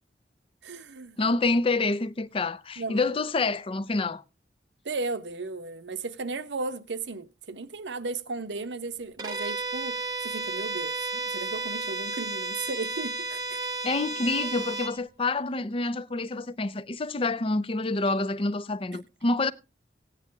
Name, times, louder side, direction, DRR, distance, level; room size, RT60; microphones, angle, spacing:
voice 1, 0.6-1.2 2.8-3.1 4.8-13.6, right 3 dB, 85° right, 0.9 m, -35 dB
voice 2, 1.2-4.2 13.8-19.5, left 3 dB, 30° left, 0.5 m, -27 dB
Bowed string instrument, 9.2-15.0, right 3 dB, 20° right, 0.9 m, -32 dB
16.5 x 9.2 x 3.3 m
head